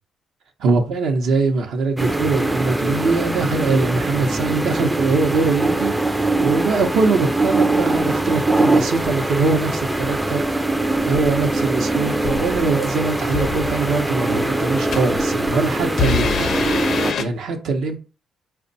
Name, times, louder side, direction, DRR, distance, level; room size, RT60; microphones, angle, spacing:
voice 1, 0.6-10.4 11.0-16.5 17.2-18.0, right 4 dB, 75° right, 0.7 m, -22 dB
sound 1, 2.0-17.1, right 2 dB, 10° right, 0.4 m, -22 dB
sound 2, 9.0-9.4 10.0-10.3 11.1-15.2 15.9-17.2, left 6 dB, 65° left, 0.5 m, -28 dB
4.4 x 2.2 x 4.0 m
cardioid pair, 90°, 0 cm